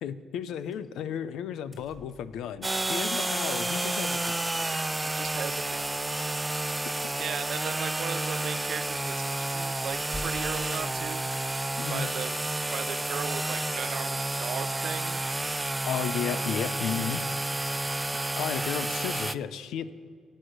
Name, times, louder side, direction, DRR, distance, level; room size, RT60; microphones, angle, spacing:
voice 1, 0.0-4.6 7.0-7.1 11.8-12.1 15.9-17.2 18.4-19.9, left 8 dB, 80° left, 15 dB, 0.6 m, -33 dB
sound 1, 0.7-0.9 1.2-1.3 1.4-2.7 4.0-4.1 4.4-4.6 5.1-6.0 6.5-6.7 7.2-7.7 9.9-10.7, equal, 5° left, 2.5 m, -46 dB
sound 2, 2.6-19.4, right 2 dB, 15° right, 0.4 m, -30 dB
voice 2, 5.1-5.9 7.2-11.3 11.9-12.4 12.7-15.2, right 9 dB, 65° right, 13 dB, 0.6 m, -37 dB
17.5 x 6.4 x 6.4 m, 2.2 s
cardioid pair, 90°, 0 cm